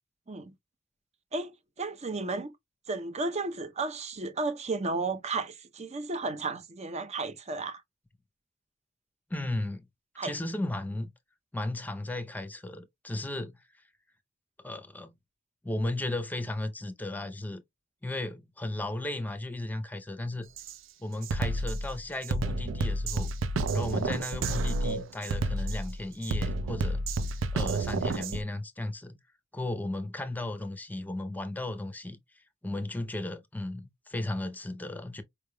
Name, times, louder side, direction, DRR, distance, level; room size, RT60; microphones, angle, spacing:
voice 1, 1.8-2.5 2.9-7.8 10.2-10.3, right 3 dB, 35° right, 0.7 m, -33 dB
voice 2, 9.3-9.9 10.2-11.1 11.5-13.6 14.6-15.1 15.6-17.6 18.0-20.5 21.0-23.3 23.7-27.0 27.5-29.2 29.5-32.2 32.6-35.2, left 1 dB, 10° left, 0.6 m, -35 dB
Drum kit, 20.6-20.7 21.2-28.4, right 2 dB, 80° right, 0.5 m, -30 dB
4.8 x 3.3 x 2.2 m
head